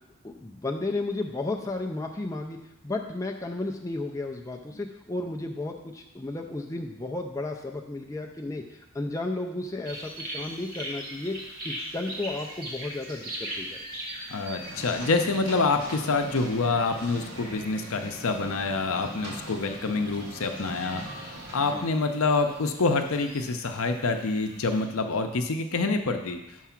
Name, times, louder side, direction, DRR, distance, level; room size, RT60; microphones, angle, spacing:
voice 1, 0.2-11.4 11.6-13.8 19.8-20.0 21.7-21.9, left 2 dB, 15° left, 1 dB, 0.4 m, -33 dB
sound 1, 9.9-24.8, right 1 dB, 40° right, 1.4 m, -42 dB
voice 2, 14.3-26.4, left 3 dB, 70° left, 6 dB, 0.6 m, -27 dB
sound 2, 14.6-21.7, right 1 dB, 75° right, 2.3 m, -41 dB
5.9 x 4.7 x 5.8 m, 0.90 s
head